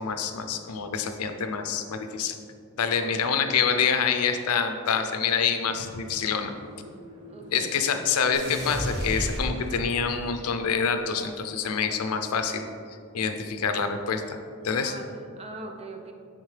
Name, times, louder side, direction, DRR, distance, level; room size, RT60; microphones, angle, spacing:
voice 1, 0.0-2.4 2.8-6.5 7.5-12.6 13.1-14.4 14.6-14.9, left 6 dB, 75° left, 7 dB, 0.5 m, -26 dB
sound 1, 5.7-12.2, equal, 85° right, 1.4 m, -48 dB
voice 2, 7.3-7.9 14.9-16.1, right 2 dB, 30° right, 3 dB, 0.6 m, -41 dB
sound 2, 8.3-10.1, equal, 50° right, 1.2 m, -31 dB
10.0 x 3.7 x 3.3 m, 2.3 s
head